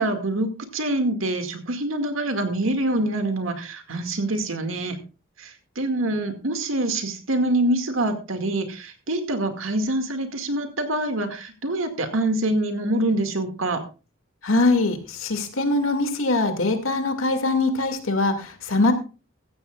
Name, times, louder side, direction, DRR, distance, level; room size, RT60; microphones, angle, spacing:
voice 1, 0.0-5.0 5.4-13.8, right 1 dB, 80° right, 6 dB, 2.2 m, -25 dB
voice 2, 14.4-18.9, left 2 dB, 85° left, 6 dB, 2.4 m, -22 dB
15.0 x 14.5 x 2.4 m, 0.32 s
head